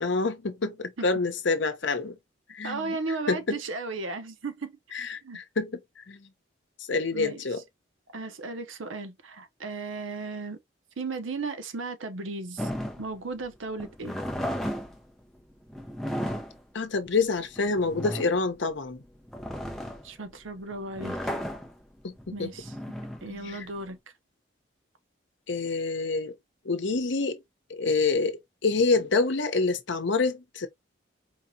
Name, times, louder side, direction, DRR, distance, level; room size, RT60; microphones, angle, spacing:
voice 1, 0.0-2.2 2.5-3.0 3.3-3.6 4.9-6.3 6.9-7.6 16.7-19.0 22.0-22.5 23.3-23.7 25.5-26.4 26.6-27.4 27.7-30.7, left 3 dB, 70° left, 0.7 m, -27 dB
voice 2, 2.6-4.8 5.2-5.4 7.1-7.4 8.1-10.6 11.0-12.7 13.0-14.2 20.0-21.2 22.3-22.8 23.2-24.0, right 3 dB, 80° right, 0.8 m, -35 dB
sound 1, 12.6-23.9, equal, ahead, 0.6 m, -35 dB
4.6 x 2.8 x 2.7 m
head